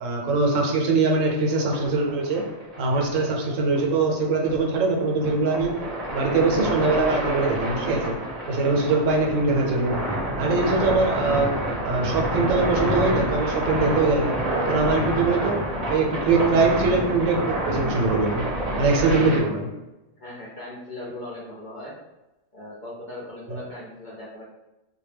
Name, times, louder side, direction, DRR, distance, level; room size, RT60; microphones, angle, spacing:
voice 1, 0.0-2.4 2.8-5.8 6.1-8.2 8.5-10.0 10.4-11.6 11.8-14.4 14.7-15.6 15.9-18.4 18.8-19.7 23.6-23.7, right 3 dB, 85° right, 0 dB, 1.0 m, -22 dB
sound 1, 1.1-19.4, right 1 dB, 40° right, 0.6 m, -28 dB
voice 2, 20.2-21.9 22.5-24.4, left 1 dB, 60° left, -5 dB, 0.5 m, -38 dB
2.2 x 2.1 x 3.3 m, 1.0 s
omnidirectional pair, 1.3 m